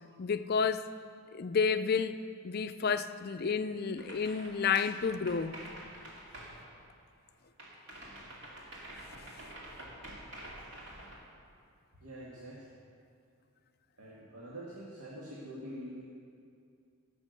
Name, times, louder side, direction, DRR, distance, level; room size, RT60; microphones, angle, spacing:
voice 1, 0.2-0.9 1.3-2.2 2.4-5.6, left 5 dB, 45° left, 11 dB, 0.4 m, -30 dB
sound 1, 4.0-7.3 7.6-11.2, right 1 dB, 50° right, 2.4 m, -48 dB
voice 2, 12.0-12.8 14.0-16.0, equal, 80° right, -5 dB, 1.8 m, -46 dB
17.0 x 6.1 x 6.7 m, 2.4 s
head